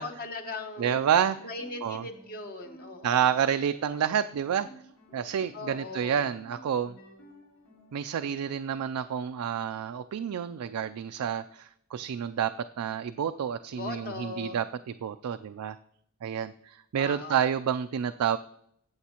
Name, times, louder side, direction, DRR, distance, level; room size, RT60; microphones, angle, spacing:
voice 1, 0.0-1.1 1.4-3.4 5.5-6.3 13.7-14.6 17.0-17.5, left 3 dB, 45° left, 4 dB, 1.0 m, -39 dB
sound 1, 0.8-8.1, equal, 70° left, 4.7 m, -54 dB
voice 2, 0.8-1.4 1.8-2.0 3.0-4.7 5.1-6.9 7.9-15.8 16.2-18.4, right 8 dB, 85° right, 10 dB, 0.4 m, -29 dB
14.0 x 8.1 x 2.9 m, 0.71 s
head